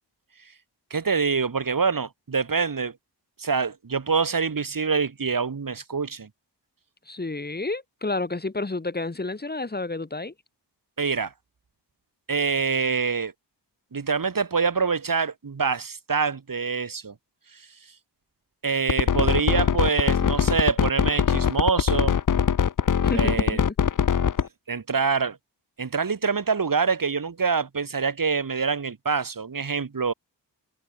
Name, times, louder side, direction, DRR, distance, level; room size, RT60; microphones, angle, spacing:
voice 1, 0.9-3.0 3.4-6.3 11.0-11.3 12.3-13.3 13.9-17.1 17.5-17.6 18.6-22.2 23.1-23.7 24.7-25.4 25.8-30.1, right 5 dB, 50° right, 6.1 m, -25 dB
voice 2, 7.1-10.3 23.0-23.7, left 3 dB, 20° left, 3.6 m, -30 dB
sound 1, 18.9-24.5, left 8 dB, 45° left, 0.8 m, -21 dB
wide cardioid pair, 155°, 43 cm